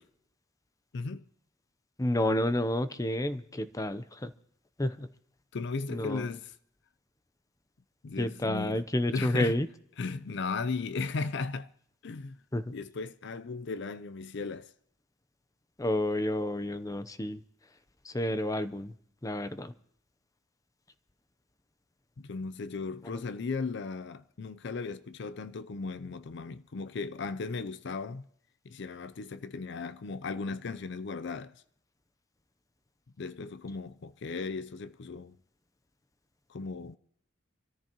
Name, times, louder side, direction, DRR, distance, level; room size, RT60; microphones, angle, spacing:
voice 1, 0.9-1.3 5.5-6.5 8.0-8.8 9.1-9.5 10.0-11.7 12.0-12.4 12.7-14.7 22.2-28.3 28.6-31.6 33.2-35.4 36.5-37.0, left 4 dB, 60° left, 0.5 m, -36 dB
voice 2, 2.0-4.3 4.8-5.1 5.9-6.3 8.2-9.7 12.5-12.7 15.8-17.4 18.0-18.9 19.2-19.7, left 1 dB, 20° left, 0.6 m, -30 dB
26.5 x 14.0 x 2.9 m
head